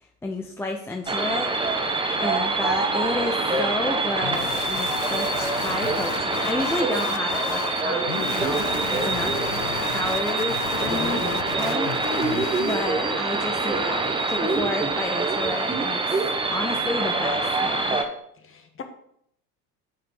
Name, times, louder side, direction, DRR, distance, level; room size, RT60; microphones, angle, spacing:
voice 1, 0.2-1.5 1.8-9.6 9.9-11.2 11.6-12.3 12.7-16.0 16.5-18.0, left 2 dB, 5° left, 2 dB, 0.5 m, -31 dB
sound 1, 1.1-18.0, right 3 dB, 10° right, 0.9 m, -25 dB
sound 2, 4.2-12.9, left 12 dB, 65° left, 0.7 m, -33 dB
voice 2, 10.9-11.4 18.5-18.8, left 5 dB, 25° left, 6 dB, 1.4 m, -33 dB
7.6 x 5.5 x 5.4 m, 0.71 s
figure-of-eight pair, 70°, 49 cm